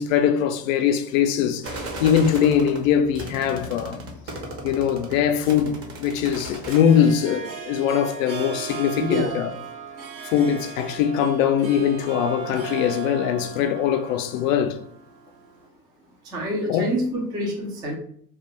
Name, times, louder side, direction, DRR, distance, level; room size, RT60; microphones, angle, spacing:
voice 1, 0.0-4.0 4.6-9.5 10.2-14.8 16.7-16.9, left 8 dB, 55° left, 0.5 m, -22 dB
sound 1, 1.6-6.8, right 1 dB, 30° right, 0.7 m, -36 dB
Harp, 5.3-15.7, right 7 dB, 80° right, 0.8 m, -37 dB
voice 2, 9.0-9.4 16.3-18.0, equal, 10° right, 0.3 m, -26 dB
2.4 x 2.3 x 3.0 m
hypercardioid pair, 90°, 50 cm